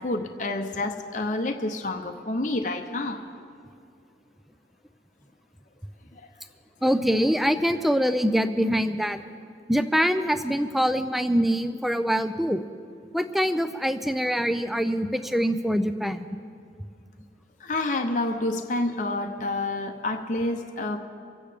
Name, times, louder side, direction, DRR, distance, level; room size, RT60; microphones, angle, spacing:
voice 1, 0.0-3.2 17.6-21.0, left 2 dB, 45° left, 4 dB, 0.8 m, -28 dB
voice 2, 6.8-9.2 9.7-12.6 13.1-16.3, equal, ahead, 10 dB, 0.5 m, -24 dB
25.0 x 8.6 x 5.1 m, 2.3 s
head